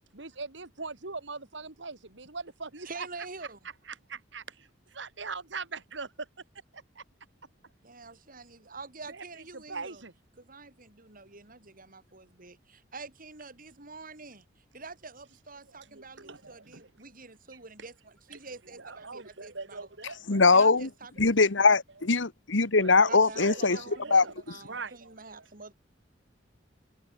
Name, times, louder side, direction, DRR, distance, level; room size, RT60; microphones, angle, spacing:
voice 1, 0.1-3.1 3.9-4.4 5.0-6.3 6.7-7.0 9.1-10.1 15.7-16.9 18.3-18.4 18.7-20.4 22.8-24.3 24.7-25.5, right 4 dB, 70° right, 2.6 m, -41 dB
voice 2, 2.8-3.6 7.8-10.0 10.4-14.5 14.7-19.9 20.5-21.6 23.1-25.7, right 4 dB, 50° right, 6.2 m, -46 dB
voice 3, 20.3-20.9 21.2-23.8 24.1-24.2, left 4 dB, 75° left, 1.6 m, -21 dB
head